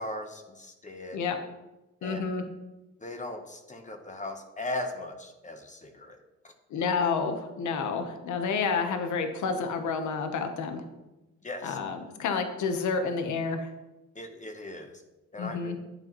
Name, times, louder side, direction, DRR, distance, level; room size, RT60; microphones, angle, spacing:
voice 1, 0.0-1.2 2.0-2.3 3.0-6.2 6.4-6.5 11.4-11.8 14.1-14.9 15.3-15.7, left 1 dB, 25° left, 5 dB, 1.1 m, -38 dB
voice 2, 2.0-2.4 6.7-10.8 11.6-13.7 15.4-15.8, left 5 dB, 75° left, 6 dB, 1.1 m, -29 dB
11.0 x 8.0 x 3.1 m, 1.0 s
cardioid pair, 90°, 30 cm